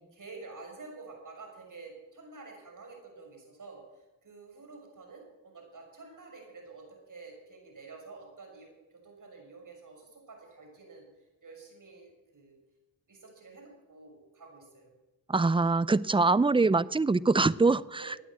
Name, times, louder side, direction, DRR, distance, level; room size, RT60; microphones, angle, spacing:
voice 1, 0.1-11.1 11.4-12.6 13.1-14.9 17.9-18.2, right 3 dB, 50° right, 2 dB, 6.3 m, -49 dB
voice 2, 15.3-18.2, right 3 dB, 15° right, 20 dB, 0.4 m, -24 dB
15.5 x 9.3 x 7.6 m, 1.0 s
cardioid pair, 55°, 41 cm